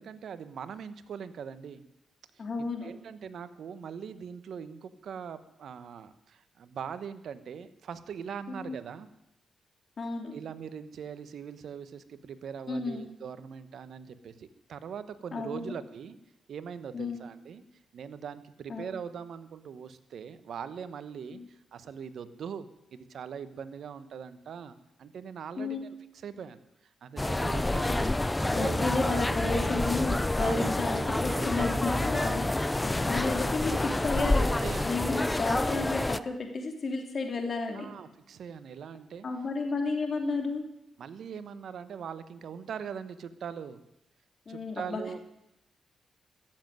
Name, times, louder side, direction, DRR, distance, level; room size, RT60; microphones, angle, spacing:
voice 1, 0.0-1.8 2.3-2.4 2.8-9.1 10.3-16.1 16.5-17.6 17.9-26.0 26.2-26.6 27.0-28.1 28.4-29.3 29.6-30.0 30.4-31.8 32.1-32.5 34.6-34.9 37.7-39.2 41.0-43.8 44.5-45.2, right 7 dB, 70° right, 12 dB, 1.1 m, -41 dB
voice 2, 2.4-2.9 8.5-8.8 10.0-10.3 12.7-13.1 15.3-15.6 16.9-17.2 18.7-18.9 21.3-21.5 25.6-25.9 28.5-32.4 32.8-34.5 34.8-37.9 39.2-40.7 44.5-45.2, left 3 dB, 50° left, 3 dB, 3.0 m, -32 dB
sound 1, 27.2-36.2, left 2 dB, 15° left, 0.6 m, -28 dB
14.5 x 7.6 x 9.2 m, 0.87 s
supercardioid pair, 55°, 0 cm